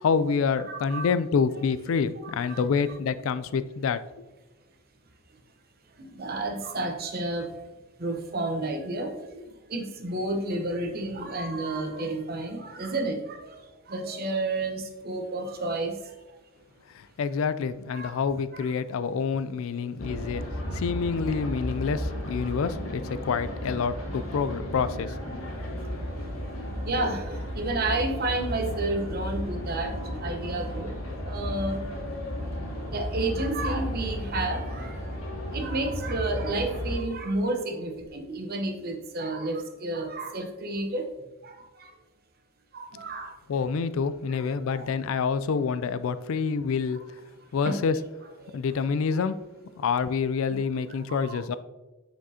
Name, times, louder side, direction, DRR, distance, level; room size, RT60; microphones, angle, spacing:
voice 1, 0.0-4.0 16.9-20.4 20.7-25.2 43.5-47.0 47.5-48.0 48.5-49.4 49.8-51.5, left 5 dB, 65° left, 14 dB, 0.3 m, -27 dB
voice 2, 0.7-1.1 2.2-2.6 6.0-7.5 8.0-16.0 17.9-18.2 18.5-18.7 20.7-20.8 21.3-21.4 25.8-26.3 26.7-30.9 31.2-31.9 32.9-35.0 35.5-41.1 41.4-41.9 42.7-43.3 44.3-44.9 47.6-47.8 48.4-48.5 50.5-50.6 51.1-51.4, right 2 dB, 45° right, 5 dB, 0.8 m, -31 dB
sound 1, 20.0-37.0, equal, 85° left, 2.1 m, -34 dB
7.3 x 6.1 x 2.8 m, 1.1 s
head